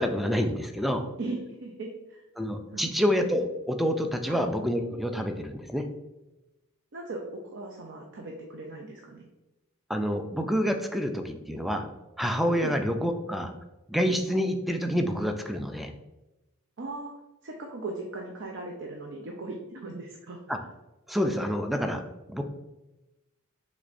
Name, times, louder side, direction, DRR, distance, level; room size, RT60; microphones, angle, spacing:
voice 1, 0.0-1.0 2.4-5.9 9.9-11.9 12.2-13.5 13.9-15.9 20.5-20.6 21.1-22.0 22.3-22.4, equal, ahead, 5 dB, 0.3 m, -27 dB
voice 2, 1.2-2.2 2.7-2.9 4.3-4.4 6.9-9.3 12.6-12.8 16.8-17.1 17.4-20.4, right 2 dB, 60° right, 1 dB, 0.6 m, -38 dB
6.2 x 3.2 x 2.6 m, 1.0 s
head